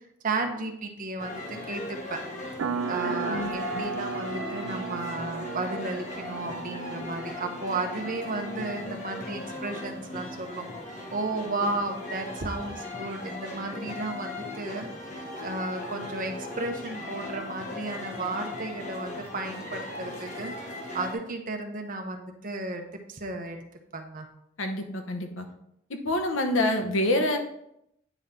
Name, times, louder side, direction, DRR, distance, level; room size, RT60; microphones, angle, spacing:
voice 1, 0.2-2.2 2.9-10.7 11.1-20.5 20.9-22.8 23.1-23.6 23.9-24.3, right 2 dB, 45° right, 4 dB, 0.9 m, -33 dB
sound 1, 1.2-21.1, left 2 dB, 40° left, 1.2 m, -38 dB
sound 2, 2.6-8.8, right 5 dB, 75° right, 0.4 m, -35 dB
voice 2, 24.6-25.5 25.9-27.4, left 1 dB, 80° left, 5 dB, 1.0 m, -26 dB
9.1 x 3.8 x 4.3 m, 0.77 s
head